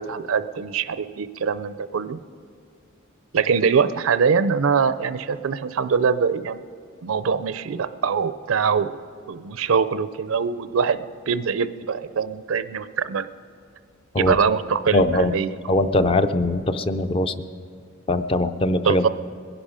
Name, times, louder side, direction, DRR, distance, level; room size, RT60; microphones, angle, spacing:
voice 1, 0.0-2.2 3.3-6.6 7.0-9.0 9.3-13.3 14.2-15.5 18.8-19.1, right 6 dB, 75° right, 13 dB, 0.5 m, -23 dB
voice 2, 14.9-15.3 15.7-17.3 18.1-19.1, left 1 dB, 25° left, 10 dB, 0.5 m, -21 dB
21.0 x 11.0 x 5.0 m, 2.3 s
head